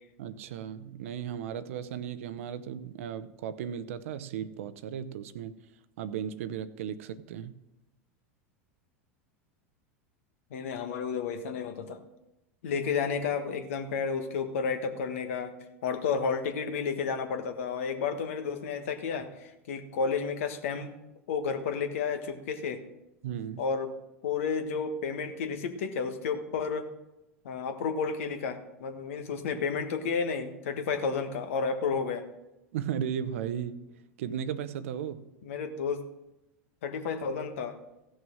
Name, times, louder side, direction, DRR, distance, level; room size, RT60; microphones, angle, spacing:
voice 1, 0.2-5.5 6.0-7.6 23.2-23.6 32.7-33.9 34.2-35.2, right 9 dB, 70° right, 14 dB, 0.7 m, -35 dB
voice 2, 10.5-12.0 12.6-15.5 15.8-20.9 21.3-22.8 23.6-23.9 24.2-26.9 27.4-32.3 35.4-36.0 36.8-37.8, left 5 dB, 70° left, 7 dB, 1.4 m, -31 dB
15.0 x 6.4 x 6.3 m, 0.96 s
hypercardioid pair, 90°, 8 cm